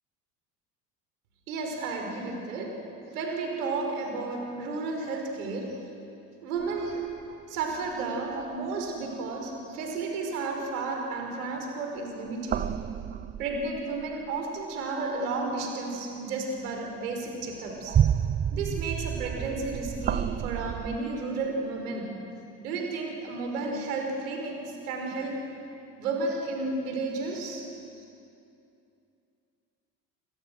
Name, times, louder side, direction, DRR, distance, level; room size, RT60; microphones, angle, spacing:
voice 1, 1.5-2.8 3.1-5.8 6.4-7.0 7.5-12.7 13.4-18.0 18.5-22.1 22.6-25.4 26.0-27.6, right 3 dB, 65° right, 2 dB, 5.4 m, -32 dB
sound 1, 6.6-7.9 8.3-9.1 12.1-14.1 15.0-16.0 16.6-16.7 17.4-21.0, right 9 dB, 20° right, 0.6 m, -31 dB
28.5 x 27.5 x 6.4 m, 2.7 s
figure-of-eight pair, 65°, 48 cm